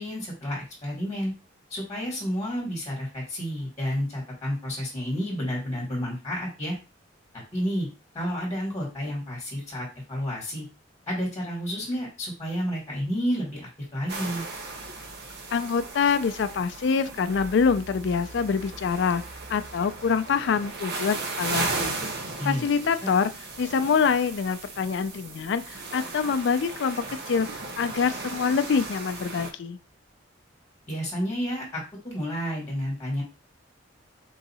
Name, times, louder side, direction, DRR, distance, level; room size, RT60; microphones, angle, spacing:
voice 1, 0.0-1.3 1.7-6.7 7.5-7.9 8.1-10.6 11.1-14.5 22.4-23.1 30.9-33.2, equal, 15° left, -4 dB, 1.5 m, -30 dB
sound 1, 14.1-29.5, right 3 dB, 55° right, 0.8 m, -36 dB
voice 2, 15.5-19.2 19.5-22.0 22.5-23.3 23.6-29.8, left 6 dB, 65° left, 11 dB, 0.4 m, -25 dB
3.8 x 2.7 x 4.1 m, 0.30 s
head